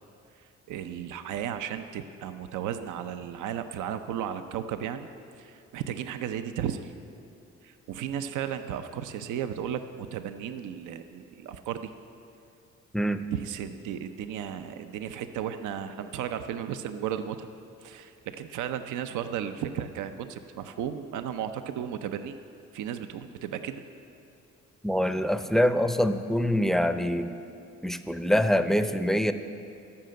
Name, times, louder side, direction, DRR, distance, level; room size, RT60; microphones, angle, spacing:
voice 1, 0.7-5.1 5.4-6.9 7.6-11.9 13.3-17.5 17.8-22.4 22.7-23.8, right 9 dB, 80° right, 9 dB, 0.6 m, -34 dB
voice 2, 24.8-27.4 27.8-29.3, equal, ahead, 10 dB, 0.5 m, -25 dB
13.0 x 5.8 x 7.5 m, 2.5 s
cardioid pair, 90°, 30 cm